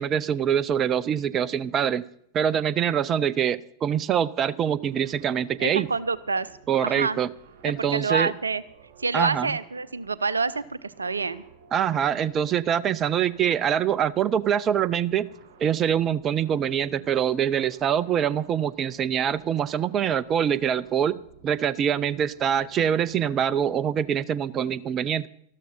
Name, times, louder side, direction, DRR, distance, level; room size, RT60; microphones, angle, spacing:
voice 1, 0.0-2.1 2.3-5.9 6.7-7.3 7.6-8.3 9.1-9.6 11.7-15.3 15.6-21.2 21.4-25.3, right 9 dB, 30° right, 19 dB, 0.4 m, -24 dB
sci-fi(long outerspace)ambient(HG), 4.8-24.2, right 5 dB, 55° right, 2.2 m, -54 dB
voice 2, 5.6-6.5 6.8-7.2 7.6-8.6 9.0-11.4, right 4 dB, 75° right, 19 dB, 0.6 m, -27 dB
13.0 x 12.5 x 5.5 m, 0.69 s
figure-of-eight pair, 90°, 0 cm